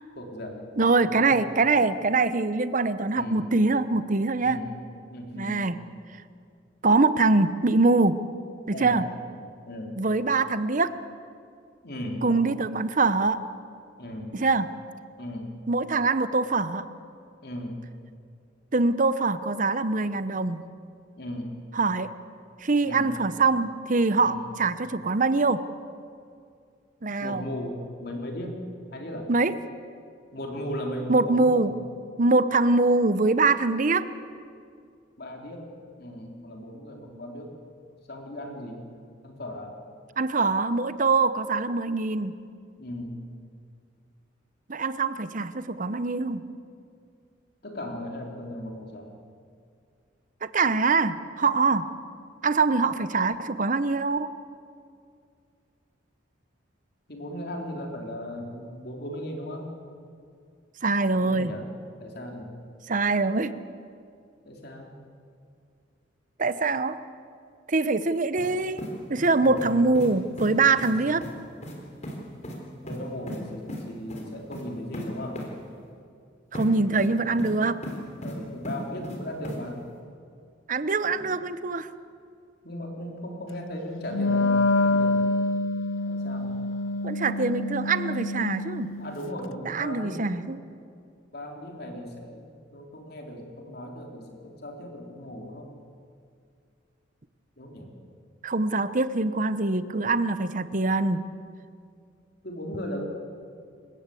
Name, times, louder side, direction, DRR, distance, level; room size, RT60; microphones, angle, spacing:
voice 1, 0.1-1.5 3.1-3.5 4.4-4.8 5.1-5.7 8.7-9.0 9.7-10.0 11.8-12.3 14.0-14.4 15.2-15.6 17.4-17.8 21.1-21.5 22.8-23.1 24.2-24.5 27.2-28.6 28.9-29.3 30.3-31.8 35.2-35.7 36.0-37.5 38.1-38.8 39.2-39.7 42.8-43.2 47.6-49.1 57.1-59.7 61.2-61.7 62.0-62.6 64.4-64.9 69.4-70.0 70.8-71.0 72.8-75.4 78.2-79.8 81.1-81.4 82.6-85.3 86.1-86.6 89.0-90.3 91.3-95.7 97.6-97.9 102.4-103.1, equal, 55° left, 1 dB, 3.4 m, -37 dB
voice 2, 0.8-4.6 5.3-5.8 6.8-8.2 8.7-9.1 10.0-10.9 12.2-13.4 14.3-14.7 15.7-16.8 18.7-20.6 21.7-22.1 22.6-25.6 27.0-27.5 29.3-29.5 31.1-31.7 32.2-34.1 40.2-42.3 44.7-46.4 50.5-51.9 52.4-54.3 60.8-61.5 62.9-63.5 66.4-67.0 67.7-71.2 76.5-77.8 80.7-81.9 87.0-88.9 89.6-90.6 98.4-101.2, right 3 dB, 40° right, 13 dB, 0.8 m, -23 dB
sound 1, 68.4-68.5 68.8-69.7 69.9-70.1 70.4-70.5 70.8-70.9 71.2-71.3 71.6-71.8 72.0-72.2 72.4-72.6 72.9-73.4 73.7-73.8 74.1-74.2 74.5-74.6 74.9-75.1 75.3-75.5 76.5-76.7 77.0-77.5 77.8-78.3 78.6-79.2 79.4-79.6, equal, 35° left, 3.9 m, -36 dB
Wind instrument woodwind instrument, 84.1-89.2, left 2 dB, 80° left, 0.6 m, -26 dB
27.5 x 15.0 x 8.4 m, 2.3 s
head